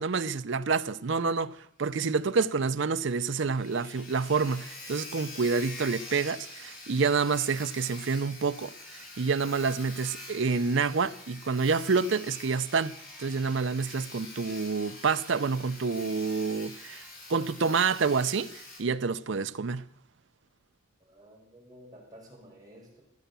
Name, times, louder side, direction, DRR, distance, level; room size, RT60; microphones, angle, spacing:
voice 1, 0.0-17.0 17.3-19.8, right 4 dB, 60° right, 0.6 m, -28 dB
Sawing, 1.9-2.0 2.3-2.4 2.8-2.9 3.1-18.8, left 2 dB, 45° left, 5.8 m, -45 dB
voice 2, 21.1-23.0, equal, 20° right, 4.9 m, -52 dB
15.0 x 10.0 x 6.9 m
head